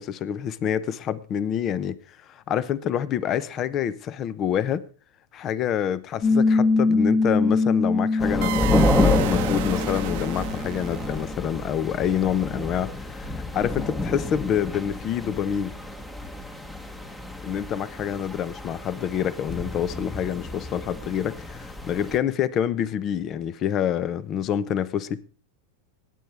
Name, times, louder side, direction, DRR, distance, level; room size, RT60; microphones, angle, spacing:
voice 1, 0.0-4.8 5.3-15.7 17.4-25.2, left 9 dB, 35° left, 0.8 m, -27 dB
Piano, 6.2-11.3, left 3 dB, 55° left, 4.9 m, -23 dB
sound 1, 8.2-22.2, left 2 dB, 10° left, 1.4 m, -29 dB
sound 2, 8.4-11.6, right 17 dB, 60° right, 0.7 m, -33 dB
21.5 x 9.4 x 3.4 m
hypercardioid pair, 105°, 0 cm